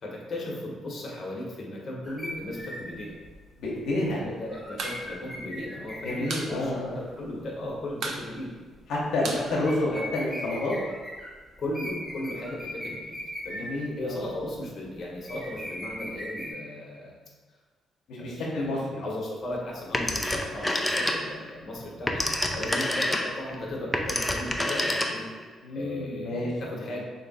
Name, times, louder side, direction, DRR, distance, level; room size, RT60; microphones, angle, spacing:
voice 1, 0.0-3.2 4.1-8.5 9.2-9.4 9.9-10.1 11.6-13.1 13.4-17.1 18.2-22.3 22.5-25.3 25.7-27.0, left 1 dB, 50° left, -2 dB, 0.9 m, -36 dB
sound 1, 2.0-7.3 7.7-7.9 8.7-9.1 9.4-11.3 11.7-13.8 14.2-14.6 15.2-16.5, equal, 5° right, 1.3 m, -39 dB
voice 2, 3.6-4.2 6.0-7.0 8.9-10.7 13.6-14.2 18.1-19.0 22.5-22.7 25.6-26.9, left 1 dB, 80° left, -5 dB, 0.8 m, -29 dB
sound 2, 4.6-5.0 5.3-5.4 5.7-6.5 6.8-6.9 7.2-7.6 7.9-10.3, right 3 dB, 65° right, 0.5 m, -35 dB
Telephone, 19.9-21.5 21.8-25.4, left 1 dB, 10° left, 0.4 m, -28 dB
3.1 x 2.7 x 4.0 m, 1.4 s
cardioid pair, 90°, 0 cm